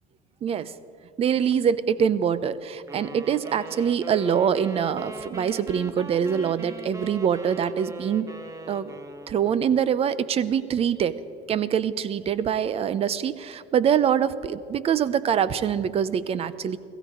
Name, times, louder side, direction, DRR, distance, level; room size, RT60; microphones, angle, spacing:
voice 1, 0.4-0.7 1.2-8.3 8.7-8.9 9.3-11.2 11.5-16.8, right 8 dB, 40° right, 17 dB, 0.6 m, -24 dB
sound 1, 2.9-9.8, right 1 dB, 20° right, 1.0 m, -40 dB
16.5 x 15.0 x 4.9 m, 2.4 s
supercardioid pair, 105°, 16 cm